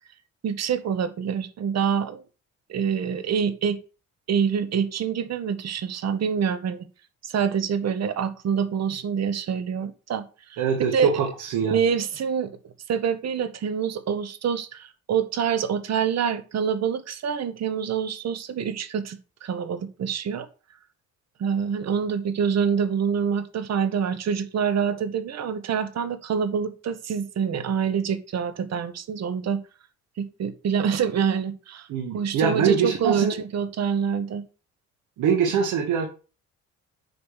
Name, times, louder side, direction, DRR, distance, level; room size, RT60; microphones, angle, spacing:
voice 1, 0.4-2.2 2.7-3.8 4.3-6.8 7.2-10.2 10.5-10.6 10.9-11.1 11.6-12.5 12.9-20.5 21.4-29.6 30.2-31.9 32.1-34.4, right 7 dB, 60° right, 12 dB, 1.2 m, -26 dB
voice 2, 10.6-11.8 31.9-33.3 35.2-36.1, right 6 dB, 85° right, 1 dB, 1.7 m, -23 dB
9.3 x 3.3 x 6.4 m, 0.35 s
cardioid pair, 90°, 30 cm